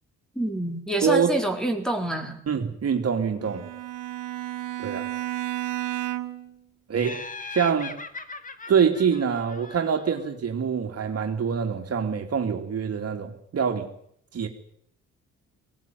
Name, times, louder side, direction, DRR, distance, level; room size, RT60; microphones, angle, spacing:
voice 1, 0.4-2.4, right 1 dB, ahead, 5 dB, 4.4 m, -27 dB
voice 2, 1.0-1.3 2.5-3.7 4.8-5.1 6.9-7.2 7.5-7.9 8.7-13.9 14.3-14.5, right 7 dB, 55° right, 4 dB, 3.1 m, -25 dB
Bowed string instrument, 3.4-6.5, right 13 dB, 85° right, 1.8 m, -32 dB
Laughter, 7.0-10.3, left 4 dB, 25° left, 2.1 m, -40 dB
20.0 x 18.0 x 9.5 m, 0.69 s
cardioid pair, 90°, 30 cm